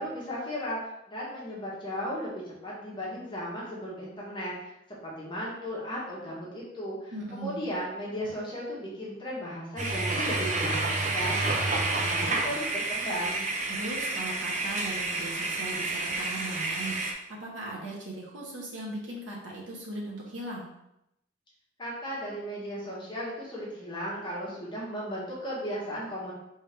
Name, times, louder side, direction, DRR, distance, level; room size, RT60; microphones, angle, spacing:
voice 1, 0.0-13.5 21.8-26.3, equal, 25° left, -6 dB, 1.3 m, -36 dB
voice 2, 7.1-7.6 13.7-20.7, right 1 dB, 80° right, -4 dB, 1.1 m, -38 dB
sound 1, 9.8-17.1, right 2 dB, 40° right, 0.5 m, -29 dB
4.5 x 3.5 x 3.4 m, 0.84 s
head